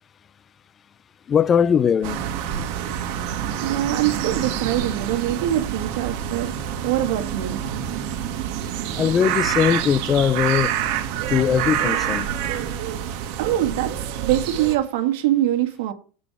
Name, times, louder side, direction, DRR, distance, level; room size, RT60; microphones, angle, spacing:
voice 1, 1.3-2.2 9.0-10.8 11.3-12.3, left 7 dB, 25° left, 0.4 m, -20 dB
sound 1, 2.0-14.8, right 9 dB, 55° right, 2.2 m, -27 dB
voice 2, 3.6-6.5 6.8-7.6 13.4-15.9, right 13 dB, 75° right, 1.9 m, -23 dB
17.0 x 6.4 x 3.5 m
supercardioid pair, 150°, 0 cm